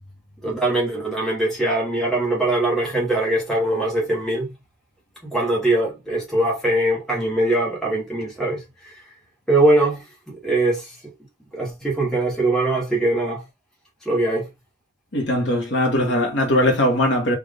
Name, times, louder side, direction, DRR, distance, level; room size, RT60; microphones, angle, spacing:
voice 1, 0.4-4.5 5.2-9.1 9.5-11.0 11.5-13.5 14.0-14.5, right 2 dB, ahead, 0.9 m, -22 dB
voice 2, 15.1-17.4, left 1 dB, 65° left, 1.1 m, -20 dB
3.5 x 2.4 x 3.7 m
head